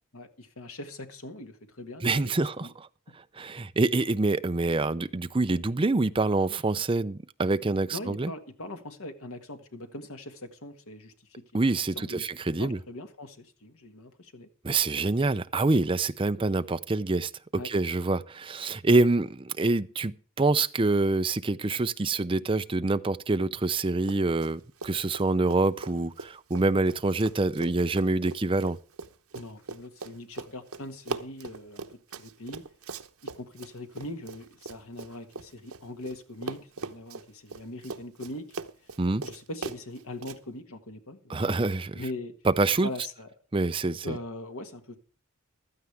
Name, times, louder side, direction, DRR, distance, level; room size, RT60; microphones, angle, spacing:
voice 1, 0.1-2.3 2.6-2.7 7.9-12.2 12.6-14.5 17.5-17.7 29.3-32.6 33.2-38.5 38.8-38.9 39.2-41.6 41.9-42.3 42.8-43.3 44.0-45.0, left 1 dB, 80° left, 1.7 m, -41 dB
voice 2, 2.0-2.7 3.4-8.3 11.5-12.8 14.6-17.3 17.6-28.8 39.0-39.2 41.3-41.9 42.5-42.9 43.5-44.2, right 3 dB, 25° right, 0.5 m, -26 dB
Run, 24.0-24.5 24.8-36.2 36.4-40.4, right 4 dB, 85° right, 0.9 m, -40 dB
15.5 x 12.5 x 3.4 m
head